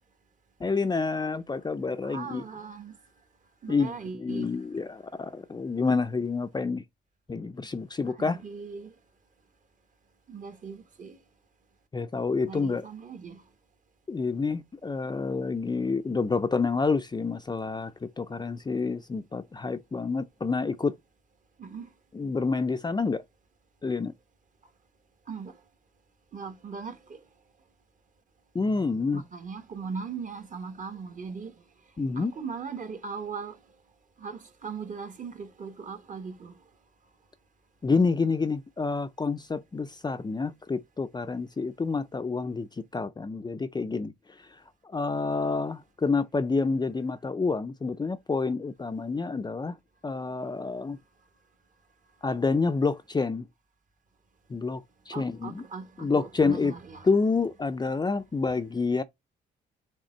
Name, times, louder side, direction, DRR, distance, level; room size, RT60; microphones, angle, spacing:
voice 1, 0.6-2.4 3.7-3.9 4.2-6.8 7.3-8.4 11.9-12.9 14.1-20.9 22.1-23.2 23.8-24.1 28.5-29.2 32.0-32.3 37.8-44.1 44.9-49.7 50.0-51.0 52.2-53.5 54.5-55.6 56.0-56.7 57.0-59.0, left 4 dB, 20° left, 0.5 m, -28 dB
voice 2, 2.0-3.0 3.6-4.6 8.0-8.9 10.3-11.2 12.4-13.4 21.6-21.9 25.3-25.6 26.3-27.2 29.1-31.6 32.0-33.6 34.2-36.6 55.1-57.1, right 5 dB, 40° right, 1.3 m, -39 dB
6.5 x 3.7 x 4.4 m
cardioid pair, 90°, 20 cm